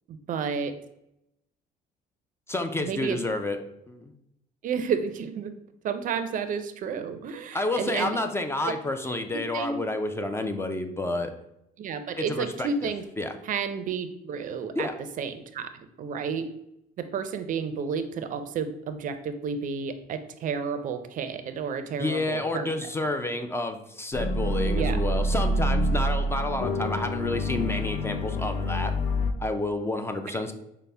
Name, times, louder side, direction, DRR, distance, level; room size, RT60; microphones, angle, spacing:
voice 1, 0.1-0.7 2.8-3.2 4.6-5.5 5.8-8.2 8.7-8.8 9.3-9.8 11.8-13.0 13.4-14.9 15.2-15.7 16.0-16.5 17.0-22.9 24.7-25.0, right 6 dB, 50° right, 9 dB, 0.4 m, -31 dB
voice 2, 2.5-3.6 3.9-4.1 7.5-11.3 12.2-12.7 13.2-13.3 14.7-14.9 22.0-28.9 29.4-30.5, left 2 dB, 15° left, 6 dB, 0.4 m, -29 dB
sound 1, 24.1-29.3, equal, 50° left, 0.7 m, -27 dB
5.4 x 2.0 x 3.3 m, 0.82 s
cardioid pair, 110°, 17 cm